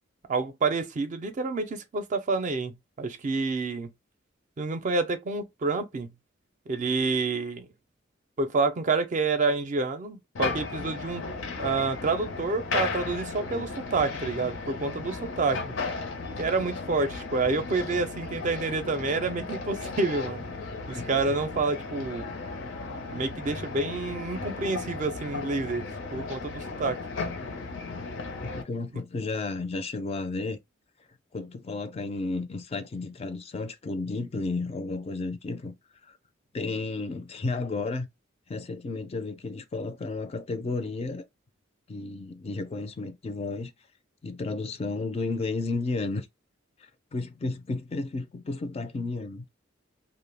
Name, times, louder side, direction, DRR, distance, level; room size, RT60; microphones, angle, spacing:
voice 1, 0.3-3.9 4.6-6.1 6.7-7.7 8.4-11.2 11.6-15.6 16.4-20.5 20.9-22.3 23.1-27.0, right 3 dB, 40° right, 0.4 m, -28 dB
sound 1, 10.4-28.6, left 4 dB, 85° left, 0.7 m, -35 dB
voice 2, 28.4-30.6 31.3-35.8 36.0-36.2 36.5-38.1 38.5-41.3 41.9-43.7 44.2-46.3 47.1-49.5, left 3 dB, 30° left, 0.4 m, -32 dB
2.2 x 2.1 x 3.2 m
head